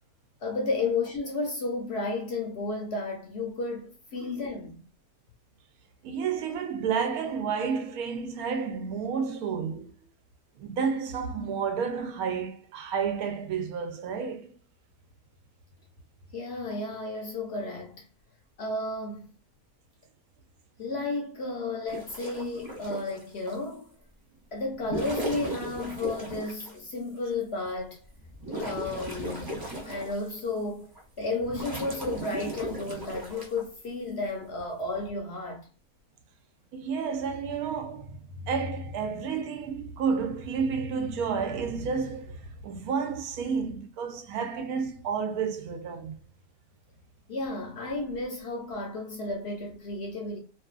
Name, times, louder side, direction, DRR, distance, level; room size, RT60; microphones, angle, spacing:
voice 1, 0.4-4.8 16.3-18.1 18.6-19.3 20.8-23.9 24.5-28.0 28.6-29.5 29.8-30.9 31.2-35.7 47.3-50.4, left 3 dB, 60° left, 0.7 m, -33 dB
voice 2, 6.0-9.9 10.6-14.5 36.7-46.2, right 6 dB, 85° right, 1.1 m, -31 dB
sound 1, 21.9-23.6 24.7-26.8 27.4-27.5 28.0-30.5 31.0-33.6 34.8-35.1, right 1 dB, 35° right, 0.3 m, -37 dB
2.5 x 2.4 x 2.3 m
omnidirectional pair, 1.5 m